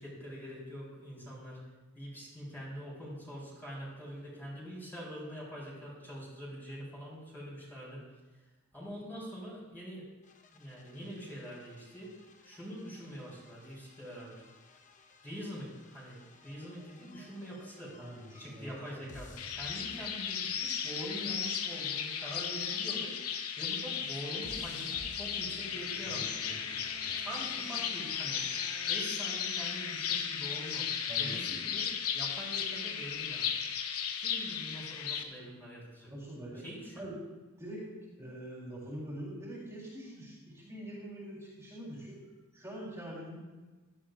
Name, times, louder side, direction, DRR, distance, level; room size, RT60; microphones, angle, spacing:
voice 1, 0.0-1.6 1.9-8.0 8.3-8.4 8.7-10.1 10.5-12.1 12.4-14.4 15.2-18.0 18.4-23.2 23.6-26.4 26.7-26.8 27.1-28.5 28.9-30.9 31.2-31.9 32.1-33.5 34.1-36.1 36.5-37.0, equal, 10° left, -6 dB, 4.3 m, -44 dB
sound 1, 10.2-29.0, left 2 dB, 35° left, 0.9 m, -56 dB
voice 2, 18.0-18.7 26.1-27.2 31.1-31.3 36.0-36.6 37.0-37.1 37.6-37.8 38.2-42.2 42.5-43.4, right 1 dB, 15° right, -6 dB, 3.8 m, -44 dB
sound 2, 19.4-35.2, left 7 dB, 80° left, 1.0 m, -35 dB
17.5 x 13.0 x 2.6 m, 1.3 s
head